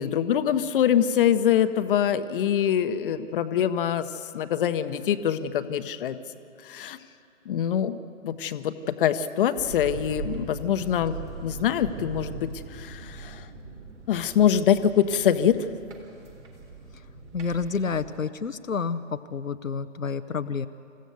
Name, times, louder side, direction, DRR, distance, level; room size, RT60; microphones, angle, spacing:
voice 1, 0.0-6.2 6.6-7.0 7.5-8.0 8.2-11.2 11.4-13.5 14.1-15.7, left 9 dB, 45° left, 11 dB, 1.0 m, -24 dB
sound 1, 9.5-18.2, right 4 dB, 60° right, 3.9 m, -41 dB
voice 2, 17.3-20.7, left 5 dB, 85° left, 10 dB, 0.8 m, -29 dB
27.0 x 15.5 x 6.9 m, 2.5 s
figure-of-eight pair, 120°, 39 cm